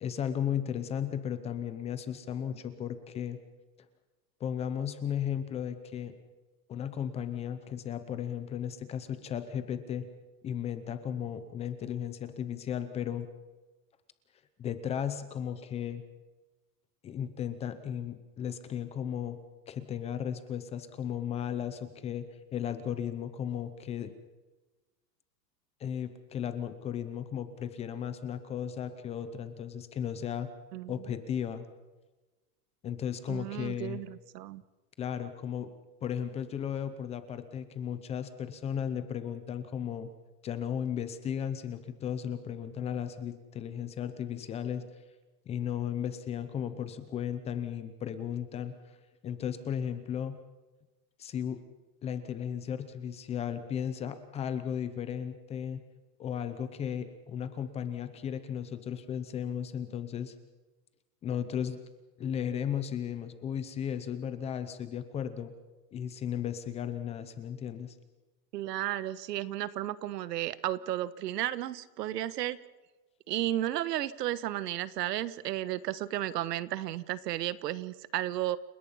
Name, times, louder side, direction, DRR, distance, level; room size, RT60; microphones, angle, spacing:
voice 1, 0.0-3.4 4.4-6.1 6.7-10.1 10.4-13.3 14.6-16.0 17.0-19.4 19.7-24.1 25.8-30.5 30.9-31.7 32.8-34.0 35.0-35.7 36.0-40.1 40.4-44.9 45.5-48.7 49.2-50.4 51.2-51.6 52.0-55.8 56.2-60.3 61.2-61.8 62.2-65.5 65.9-67.9, left 9 dB, 15° left, 11 dB, 0.7 m, -35 dB
voice 2, 33.3-34.6 68.5-72.6 73.3-78.6, right 13 dB, 80° right, 16 dB, 1.4 m, -33 dB
30.0 x 18.0 x 5.6 m, 1.2 s
supercardioid pair, 170°, 48 cm